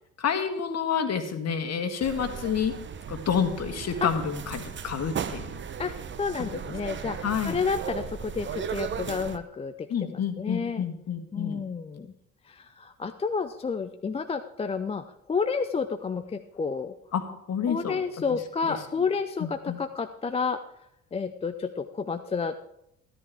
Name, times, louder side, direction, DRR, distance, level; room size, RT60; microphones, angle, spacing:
voice 1, 0.2-2.8 3.1-5.6 6.4-6.6 7.2-7.6 9.9-11.6 17.1-18.0 18.7-18.8 19.4-19.8, left 7 dB, 35° left, 7 dB, 1.7 m, -29 dB
sound 1, 2.0-9.4, right 7 dB, 25° right, 0.8 m, -36 dB
voice 2, 5.8-10.8 11.3-12.1 12.5-17.0 17.7-20.6 21.1-22.6, left 5 dB, 15° left, 9 dB, 0.5 m, -30 dB
14.0 x 13.0 x 3.5 m, 0.80 s
figure-of-eight pair, 50°, 43 cm